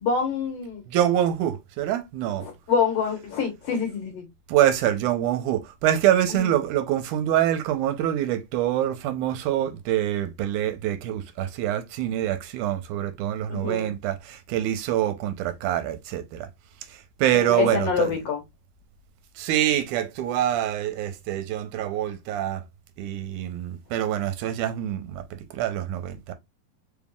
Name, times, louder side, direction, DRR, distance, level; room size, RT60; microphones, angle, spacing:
voice 1, 0.0-0.8 2.4-4.3 6.4-6.5 13.5-13.9 17.3-18.4, left 6 dB, 60° left, 1.9 m, -26 dB
voice 2, 0.9-2.5 4.5-16.5 16.9-18.2 19.4-22.6 23.0-26.3, right 11 dB, 80° right, 2.1 m, -25 dB
4.7 x 3.5 x 2.3 m
omnidirectional pair, 3.6 m